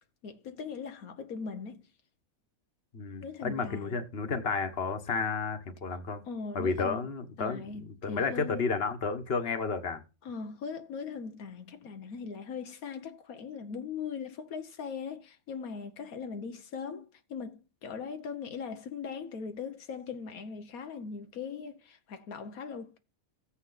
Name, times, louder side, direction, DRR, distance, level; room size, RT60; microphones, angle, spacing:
voice 1, 0.2-1.9 3.2-4.0 6.2-7.0 7.4-8.6 10.2-23.0, left 5 dB, 80° left, 1.4 m, -40 dB
voice 2, 2.9-6.2 6.5-10.0, left 4 dB, 45° left, 1.6 m, -32 dB
15.0 x 8.6 x 4.0 m
omnidirectional pair, 1.5 m